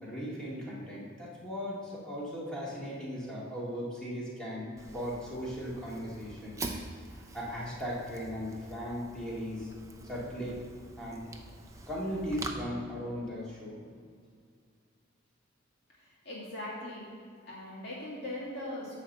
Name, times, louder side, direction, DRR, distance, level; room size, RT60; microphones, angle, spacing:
voice 1, 0.0-6.6 7.3-9.7 10.0-10.6 11.0-11.3 11.9-13.8, equal, 5° left, -7 dB, 2.1 m, -37 dB
Fire, 4.8-12.5, right 2 dB, 15° right, 0.6 m, -45 dB
voice 2, 16.0-17.1 17.4-19.0, left 1 dB, 60° left, -7 dB, 2.4 m, -40 dB
10.5 x 4.1 x 7.4 m, 2.2 s
head